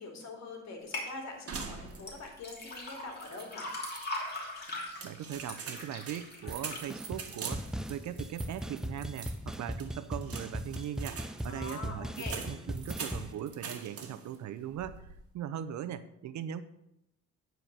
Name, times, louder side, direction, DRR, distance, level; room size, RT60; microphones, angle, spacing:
voice 1, 0.0-3.7 11.5-12.4, left 3 dB, 60° left, 2 dB, 2.6 m, -44 dB
sound 1, 0.9-1.1 2.0-8.1 8.6-9.1 9.6-9.7, left 2 dB, 35° left, 2.9 m, -41 dB
sound 2, 1.5-2.4 2.7-2.8 3.2-4.1 4.7-14.4 14.7-15.2, right 5 dB, 50° right, 1.6 m, -44 dB
voice 2, 5.0-16.6, right 10 dB, 65° right, 13 dB, 0.7 m, -40 dB
sound 3, 6.5-6.6 6.9-7.3 7.5-13.3, equal, ahead, 0.4 m, -39 dB
10.0 x 4.6 x 6.6 m, 0.83 s
cardioid pair, 90°, 30 cm